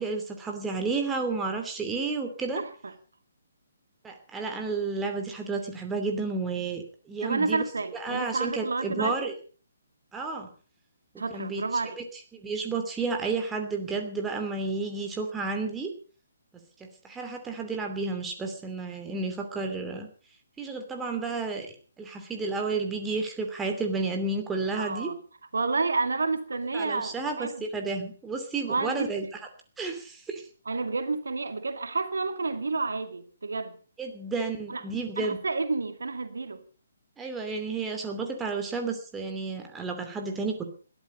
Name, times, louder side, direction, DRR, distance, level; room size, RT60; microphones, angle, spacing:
voice 1, 0.0-2.6 4.0-7.6 7.9-9.3 10.1-10.5 11.3-11.6 12.0-12.1 12.3-15.9 16.8-20.1 20.6-25.1 26.7-29.4 29.8-30.5 34.0-35.4 37.2-40.7, right 4 dB, 10° right, 2.8 m, -31 dB
voice 2, 7.2-9.3 11.2-12.0 24.8-25.2 25.5-27.6 28.7-29.1 30.7-33.8 34.7-34.8 35.2-36.6, right 3 dB, 65° right, 2.2 m, -30 dB
20.5 x 13.5 x 5.2 m
figure-of-eight pair, 135°, 0 cm